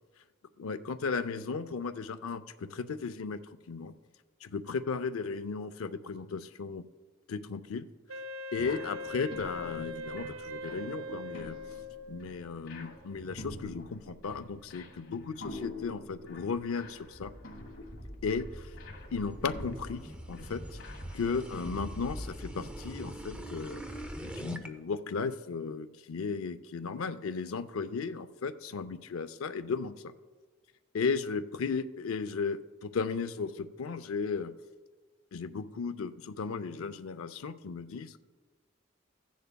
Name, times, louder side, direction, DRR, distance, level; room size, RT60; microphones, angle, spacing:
voice 1, 0.6-3.4 3.7-4.0 4.4-6.9 7.3-7.9 8.5-11.6 12.1-17.3 18.2-18.7 19.1-20.0 20.3-20.8 21.1-23.8 24.2-30.0 30.9-34.5 35.3-38.2, left 5 dB, 85° left, 12 dB, 0.5 m, -35 dB
Wind instrument woodwind instrument, 8.1-12.4, left 1 dB, 80° right, 0.4 m, -41 dB
sound 1, 8.5-22.3, left 1 dB, 70° left, 1.3 m, -47 dB
sound 2, 17.1-24.7, right 1 dB, 5° right, 0.5 m, -43 dB
15.5 x 10.0 x 2.2 m, 1.4 s
head